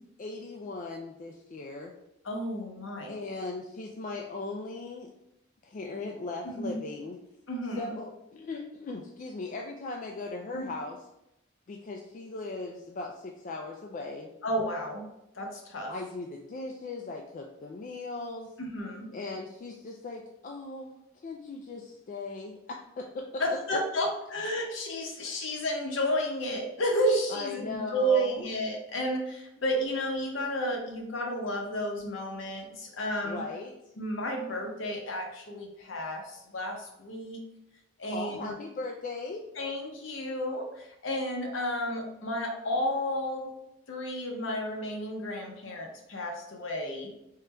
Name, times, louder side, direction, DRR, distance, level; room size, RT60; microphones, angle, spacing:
voice 1, 0.2-1.9 3.1-5.1 5.6-7.2 7.8-11.1 11.7-14.3 15.9-18.5 19.1-20.9 21.2-23.4 23.7-23.8 27.3-28.5 33.2-33.8 38.0-39.5, left 3 dB, 40° left, 1 dB, 0.3 m, -38 dB
voice 2, 2.2-3.2 6.4-6.8 7.5-7.9 10.5-10.7 14.4-15.0 15.4-15.9 18.6-19.1 23.4-33.4 34.0-37.4 38.0-38.5 39.6-43.5 43.9-47.1, equal, 65° left, 1 dB, 0.8 m, -32 dB
3.7 x 2.2 x 4.2 m, 0.84 s
head